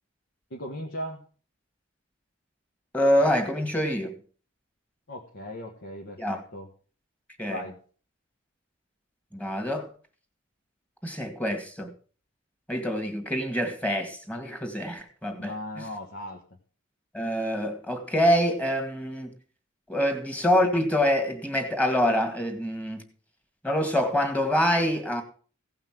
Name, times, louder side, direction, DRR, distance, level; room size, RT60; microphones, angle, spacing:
voice 1, 0.5-1.2 5.1-6.7 7.5-7.8 15.4-16.4, equal, 65° left, 1.5 m, -37 dB
voice 2, 2.9-4.2 6.2-6.4 7.4-7.6 9.3-9.9 11.0-11.9 12.7-15.5 17.1-19.3 19.9-23.0 23.6-25.2, equal, 5° left, 1.9 m, -25 dB
16.5 x 5.8 x 6.0 m
head